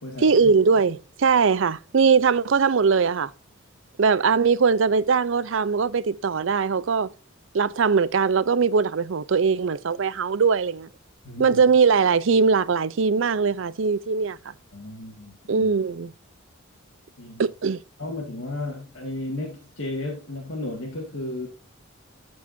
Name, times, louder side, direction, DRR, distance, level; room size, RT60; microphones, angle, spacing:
voice 1, 0.2-3.3 4.0-7.1 7.5-10.9 11.4-14.4 15.5-16.1 17.4-17.8, right 5 dB, 65° right, 0.5 m, -21 dB
voice 2, 11.2-11.6 14.7-15.7 17.2-17.4 18.0-21.5, left 2 dB, 65° left, 2.0 m, -33 dB
12.5 x 4.8 x 2.6 m
head